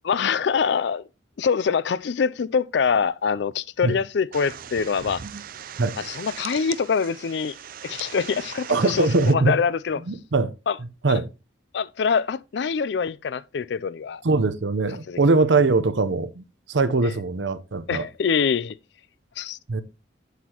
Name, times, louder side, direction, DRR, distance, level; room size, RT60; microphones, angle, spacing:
voice 1, 0.0-1.1 1.4-5.2 6.0-7.6 7.8-10.0 10.7-10.8 11.1-11.2 11.7-14.2 15.1-15.2 17.0-17.1 17.9-18.8 19.4-19.6, left 6 dB, 65° left, 0.4 m, -24 dB
sound 1, 4.3-9.3, right 9 dB, 50° right, 0.4 m, -39 dB
voice 2, 8.7-9.5 10.1-10.5 11.0-11.3 14.2-18.1 19.7-19.8, right 3 dB, 75° right, 0.7 m, -21 dB
8.2 x 8.1 x 2.9 m
head